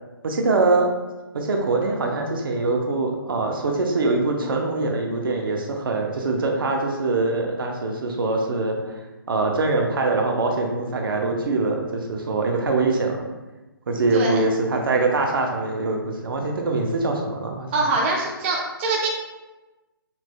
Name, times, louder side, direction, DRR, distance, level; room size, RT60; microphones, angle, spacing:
voice 1, 0.2-0.9 1.3-9.0 9.3-13.2 13.9-17.7, right 3 dB, 65° right, 2 dB, 0.8 m, -23 dB
voice 2, 14.1-14.4 17.7-19.1, right 3 dB, 30° right, -2 dB, 0.6 m, -23 dB
5.7 x 3.1 x 2.2 m, 1.1 s
hypercardioid pair, 150°, 12 cm